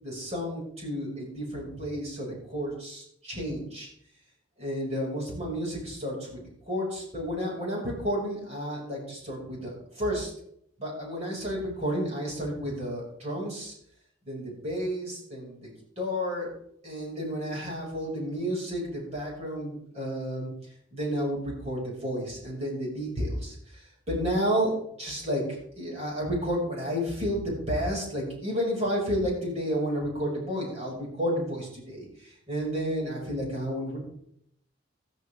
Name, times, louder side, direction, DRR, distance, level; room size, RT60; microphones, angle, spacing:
voice 1, 0.0-3.9 4.6-10.3 10.8-13.7 14.3-16.5 16.8-20.5 20.9-34.0, equal, 35° right, -2 dB, 5.9 m, -31 dB
14.5 x 13.5 x 3.6 m, 0.72 s
head